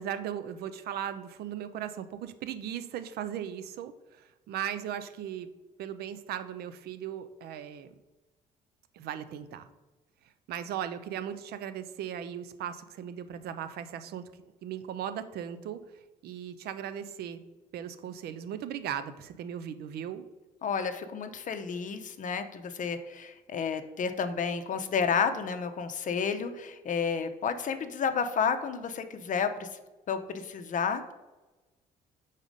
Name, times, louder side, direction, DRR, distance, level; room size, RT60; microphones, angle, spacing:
voice 1, 0.0-5.5 5.8-7.9 8.9-9.7 10.5-14.3 14.6-15.8 16.2-17.4 17.7-20.2, right 9 dB, 70° right, 12 dB, 0.5 m, -37 dB
voice 2, 20.6-29.7 30.1-31.1, left 6 dB, 50° left, 8 dB, 0.6 m, -31 dB
4.9 x 4.1 x 5.1 m, 1.1 s
supercardioid pair, 70°, 17 cm